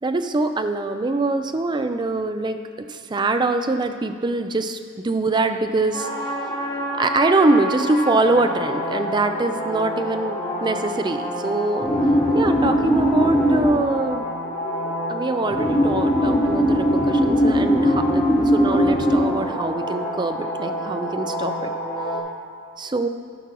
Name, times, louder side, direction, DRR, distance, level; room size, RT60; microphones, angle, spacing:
voice 1, 0.0-4.8 5.0-6.1 7.0-11.9 12.3-14.3 15.1-21.7 22.8-23.1, right 2 dB, 20° right, 8 dB, 0.4 m, -23 dB
sound 1, 5.9-22.2, equal, 25° left, 2.1 m, -23 dB
12.0 x 4.5 x 6.0 m, 2.1 s
head